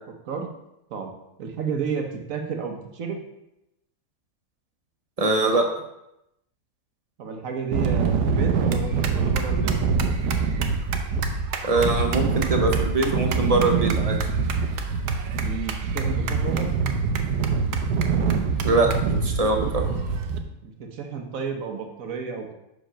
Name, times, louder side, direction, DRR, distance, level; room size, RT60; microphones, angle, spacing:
voice 1, 0.9-3.2 7.2-9.7 15.4-16.7 20.6-22.5, right 5 dB, 60° right, 3 dB, 1.3 m, -32 dB
voice 2, 5.2-5.7 11.6-14.2 18.6-19.8, right 2 dB, 35° right, 3 dB, 0.6 m, -23 dB
sound 1, 7.7-20.4, right 5 dB, 85° right, 1.3 m, -24 dB
6.4 x 5.1 x 5.1 m, 0.87 s
omnidirectional pair, 1.7 m